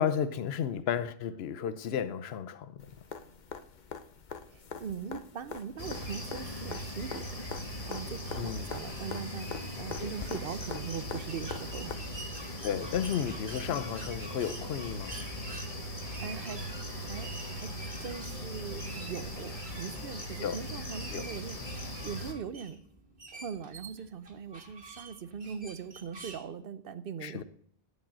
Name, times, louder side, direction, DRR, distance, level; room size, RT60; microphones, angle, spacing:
voice 1, 0.0-2.8 8.4-8.7 10.0-10.1 12.6-15.2 20.4-20.6 21.1-21.2 27.2-27.4, left 8 dB, 80° left, 0.9 m, -33 dB
sound 1, 2.8-11.9 13.9-14.0, left 6 dB, 50° left, 0.8 m, -44 dB
voice 2, 4.5-12.0 16.2-16.7 16.9-21.6 22.0-22.8 23.3-27.4, right 7 dB, 65° right, 0.9 m, -41 dB
sound 2, 5.8-22.3, equal, 35° left, 1.6 m, -39 dB
sound 3, 11.3-26.4, right 3 dB, 90° right, 2.3 m, -48 dB
13.0 x 5.3 x 7.4 m
omnidirectional pair, 1.0 m